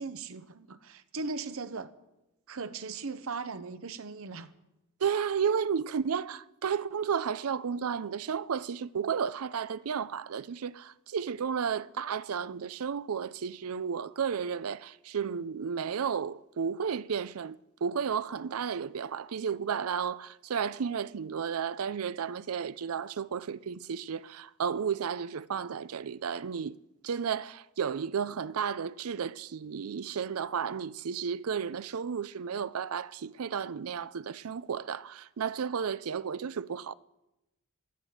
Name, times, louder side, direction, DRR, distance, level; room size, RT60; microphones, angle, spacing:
voice 1, 0.0-1.9 2.5-4.5, right 4 dB, 70° right, 0.8 m, -38 dB
voice 2, 5.0-26.8 27.0-36.9, right 7 dB, 90° right, 0.5 m, -33 dB
16.0 x 12.0 x 7.2 m
head